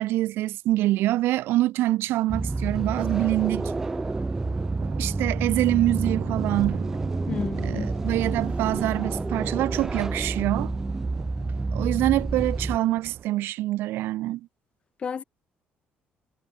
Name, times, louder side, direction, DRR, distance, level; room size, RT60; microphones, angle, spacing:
voice 1, 0.0-3.7 5.0-6.8 7.6-10.7 11.7-14.4, right 16 dB, 90° right, 0.9 m, -25 dB
Thunder, 2.1-13.2, right 9 dB, 45° right, 5.5 m, -40 dB
sound 1, 2.3-12.8, right 3 dB, 10° right, 1.2 m, -29 dB
voice 2, 7.3-7.9 15.0-15.2, left 6 dB, 30° left, 2.8 m, -31 dB
cardioid pair, 170°, 4 cm